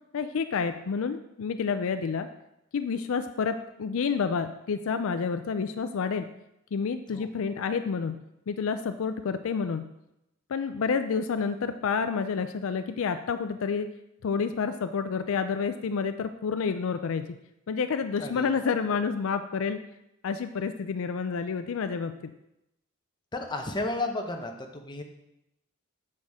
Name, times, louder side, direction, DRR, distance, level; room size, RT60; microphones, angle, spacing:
voice 1, 0.1-2.3 2.7-6.3 6.7-8.2 8.5-9.9 10.5-13.9 14.2-17.3 17.7-19.8 20.2-22.3, left 5 dB, 70° left, 10 dB, 0.4 m, -29 dB
voice 2, 18.2-18.7 23.3-25.0, left 2 dB, 20° left, 3 dB, 0.9 m, -33 dB
9.6 x 6.5 x 3.6 m, 0.87 s
head